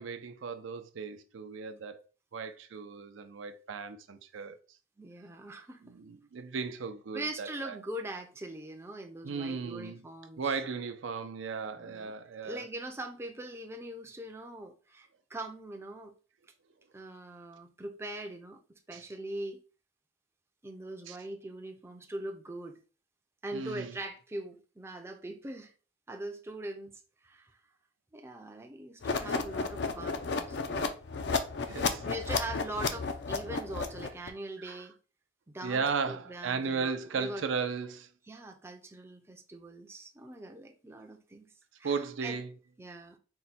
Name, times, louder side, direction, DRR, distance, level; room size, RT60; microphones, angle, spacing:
voice 1, 0.0-2.0 2.3-4.6 5.8-7.7 9.2-10.0 10.4-12.6 18.9-19.0 21.1-21.2 23.5-23.9 31.7-32.1 34.6-34.8 35.6-38.1 41.8-42.5, right 5 dB, 85° right, 0.5 m, -36 dB
voice 2, 5.0-5.9 7.1-10.4 11.7-12.1 12.4-16.1 16.9-19.6 20.6-22.8 23.4-25.7 26.1-26.9 27.2-27.6 28.1-30.9 32.0-35.0 35.5-37.4 38.3-41.5 41.8-42.4 42.8-43.2, right 1 dB, 15° right, 0.4 m, -42 dB
sound 1, 29.0-34.3, left 4 dB, 60° left, 0.5 m, -32 dB
4.5 x 2.2 x 4.1 m
head